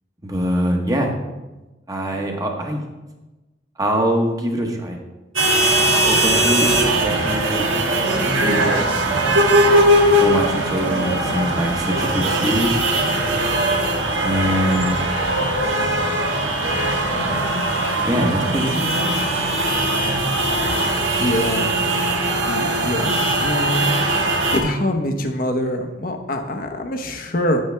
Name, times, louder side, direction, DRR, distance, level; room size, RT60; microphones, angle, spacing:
voice 1, 0.2-1.1 1.9-2.8 3.8-5.0 5.9-7.7 8.4-9.6 10.2-12.8 14.2-15.0 18.1-18.9, equal, 20° right, 1 dB, 1.2 m, -23 dB
sound 1, 5.4-24.6, right 1 dB, 90° right, 1.8 m, -20 dB
voice 2, 21.2-21.7 22.5-23.9 24.2-27.6, left 1 dB, 50° left, 5 dB, 1.0 m, -24 dB
10.5 x 8.7 x 3.4 m, 1.1 s
head